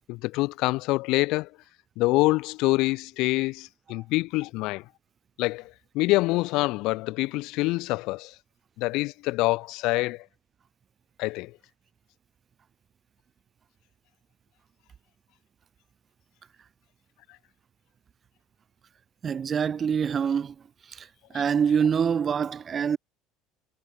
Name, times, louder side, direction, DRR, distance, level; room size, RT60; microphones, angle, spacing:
voice 1, 0.1-1.5 2.0-4.8 5.4-5.6 5.9-8.3 8.8-10.2 11.2-11.5, left 21 dB, 65° left, 0.9 m, -25 dB
voice 2, 19.2-20.6 20.9-21.1 21.3-23.0, right 7 dB, 25° right, 0.4 m, -25 dB
cardioid pair, 160°, 0 cm